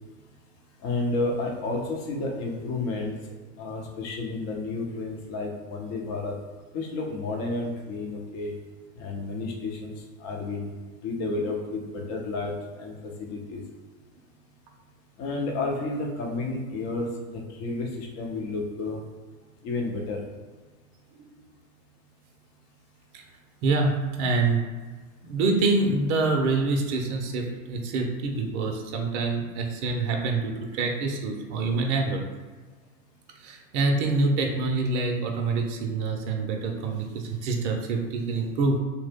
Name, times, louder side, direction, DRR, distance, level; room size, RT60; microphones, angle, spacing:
voice 1, 0.8-3.2 3.6-6.3 6.7-8.5 9.0-9.9 10.2-10.7 11.0-13.6 15.2-19.0 19.6-20.2, left 3 dB, 35° left, 0 dB, 0.7 m, -31 dB
voice 2, 23.6-23.9 24.2-24.6 25.2-32.2 33.4-38.8, right 3 dB, 55° right, 2 dB, 0.6 m, -26 dB
2.9 x 2.1 x 3.5 m, 1.4 s
hypercardioid pair, 105°, 44 cm